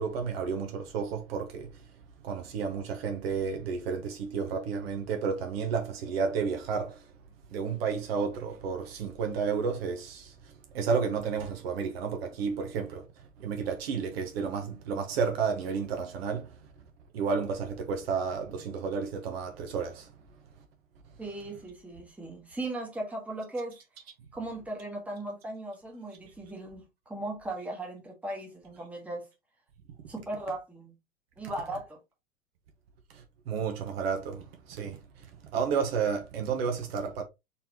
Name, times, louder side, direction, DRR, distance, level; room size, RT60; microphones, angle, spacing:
voice 1, 0.0-1.8 2.2-7.1 7.5-13.1 13.4-16.5 17.1-20.1 33.1-35.3 35.5-37.2, right 6 dB, 50° right, 1.0 m, -31 dB
voice 2, 21.2-23.7 24.3-29.2 30.1-30.9 31.4-32.0, right 2 dB, 5° right, 1.3 m, -37 dB
4.2 x 3.5 x 2.9 m
figure-of-eight pair, 100°, 39 cm